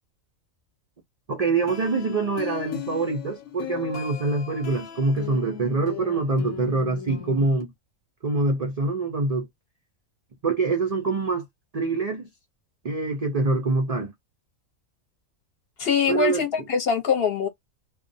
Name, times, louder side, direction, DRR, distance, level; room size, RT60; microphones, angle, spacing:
voice 1, 1.3-7.7 8.2-9.5 10.4-11.5 11.7-12.3 12.8-14.1 16.1-16.4, right 3 dB, 80° right, 0.3 m, -25 dB
sound 1, 1.6-7.6, left 8 dB, 90° left, 1.0 m, -37 dB
voice 2, 15.8-17.5, left 6 dB, 55° left, 0.8 m, -23 dB
2.3 x 2.0 x 2.6 m
omnidirectional pair, 1.4 m